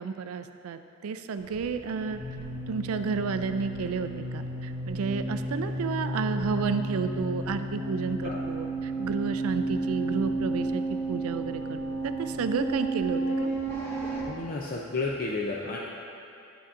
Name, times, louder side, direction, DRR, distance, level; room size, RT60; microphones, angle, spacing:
voice 1, 0.0-2.2 2.7-10.8 11.1-13.5, right 5 dB, 75° right, 9 dB, 0.3 m, -31 dB
sound 1, 1.4-14.2, right 2 dB, 10° left, 0.9 m, -32 dB
voice 2, 14.3-15.8, left 3 dB, 40° left, -3 dB, 0.4 m, -31 dB
9.9 x 6.8 x 2.5 m, 2.6 s
head